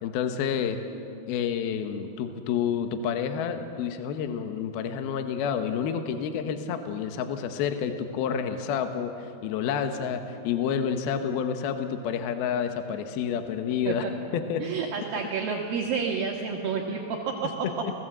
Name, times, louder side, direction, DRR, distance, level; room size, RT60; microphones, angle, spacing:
voice 1, 0.0-0.8 1.3-14.1 14.3-14.6 17.8-17.9, left 7 dB, 70° left, 7 dB, 2.9 m, -29 dB
voice 2, 14.6-17.7, right 6 dB, 65° right, 0 dB, 3.0 m, -30 dB
29.0 x 19.0 x 7.9 m, 2.6 s
omnidirectional pair, 4.8 m